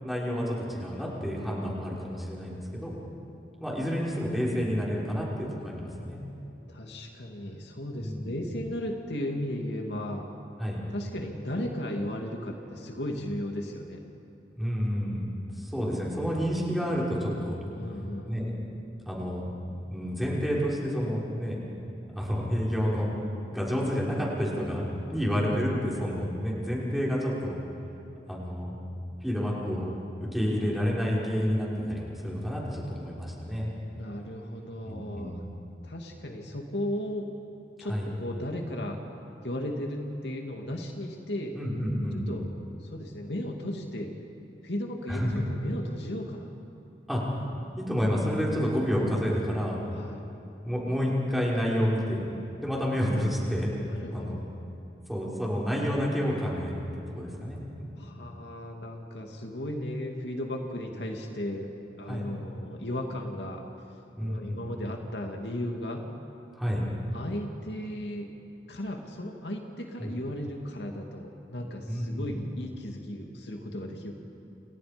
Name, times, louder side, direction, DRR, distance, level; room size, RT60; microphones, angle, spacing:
voice 1, 0.0-2.9 3.6-6.2 8.0-8.3 10.6-10.8 14.6-15.3 15.6-17.6 18.2-18.5 19.0-19.5 19.9-21.6 22.1-23.1 23.5-24.8 25.1-27.6 28.3-28.8 29.2-30.0 30.3-33.7 34.9-35.4 37.8-38.1 41.5-42.3 45.1-45.3 47.1-47.2 47.8-49.8 50.6-52.3 52.6-53.7 54.0-54.4 55.1-58.0 62.1-62.3 64.2-64.7 66.5-66.8 70.0-70.2 71.9-72.3, equal, ahead, -5 dB, 5.5 m, -29 dB
voice 2, 6.7-10.3 10.9-14.0 17.7-18.3 33.9-35.4 35.8-37.3 37.8-39.0 39.4-41.6 42.1-42.5 42.8-44.1 44.6-46.5 49.9-50.2 53.8-54.5 58.0-61.7 62.0-63.6 64.2-66.1 67.1-68.3 68.7-74.1, left 1 dB, 70° left, 2 dB, 2.5 m, -35 dB
29.5 x 29.0 x 5.3 m, 2.9 s
head